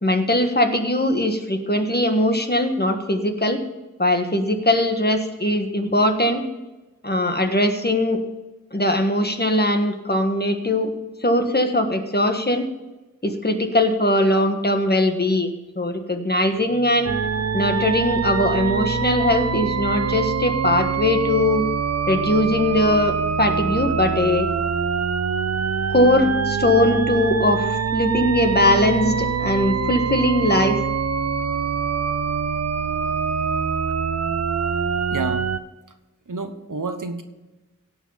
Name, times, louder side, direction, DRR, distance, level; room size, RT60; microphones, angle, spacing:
voice 1, 0.0-3.6 4.0-6.4 7.0-8.2 8.7-10.9 11.2-12.7 13.2-15.5 15.7-17.2 17.5-21.6 22.1-24.5 25.9-30.8, left 1 dB, 30° left, 5 dB, 1.5 m, -20 dB
sound 1, 17.1-35.6, right 6 dB, 55° right, 0.6 m, -24 dB
voice 2, 35.1-35.5 36.3-37.2, right 3 dB, 75° right, 8 dB, 1.1 m, -29 dB
16.5 x 5.6 x 5.7 m, 1.1 s
wide cardioid pair, 55°, 32 cm